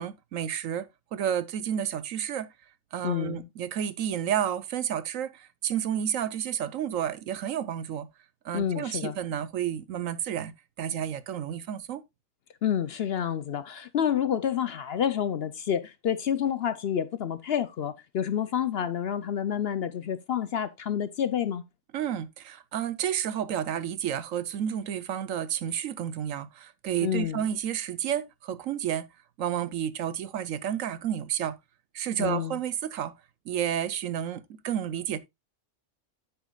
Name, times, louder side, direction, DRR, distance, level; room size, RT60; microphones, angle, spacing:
voice 1, 0.0-2.5 2.9-8.1 8.4-10.5 10.8-12.0 21.9-29.1 29.4-31.6 31.9-33.1 33.5-35.2, right 9 dB, 75° right, 1.1 m, -31 dB
voice 2, 3.0-3.5 8.5-9.2 12.6-21.6 27.0-27.4 32.2-32.6, left 9 dB, 60° left, 0.7 m, -29 dB
9.3 x 8.2 x 2.3 m
omnidirectional pair, 1.4 m